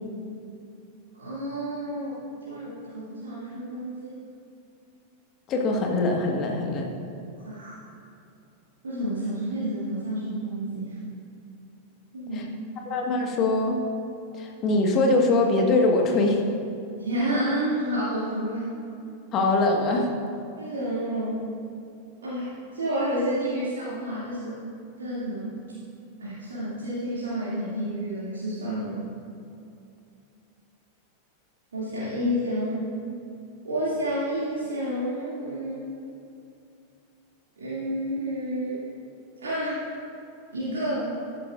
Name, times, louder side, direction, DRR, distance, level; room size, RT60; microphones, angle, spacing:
voice 1, 1.2-4.2 7.4-7.7 8.8-11.0 12.1-12.6 17.0-18.7 20.6-21.5 22.2-24.6 25.0-25.6 26.2-29.0 31.7-32.9 33.6-35.9 37.6-38.8 39.4-39.8 40.5-41.1, equal, 70° right, -10 dB, 2.4 m, -30 dB
voice 2, 5.5-6.9 12.3-12.4 12.8-13.8 14.3-16.4 19.3-20.1, left 2 dB, 35° left, 1 dB, 1.5 m, -22 dB
13.5 x 10.5 x 2.5 m, 2.6 s
figure-of-eight pair, 90°, 0 cm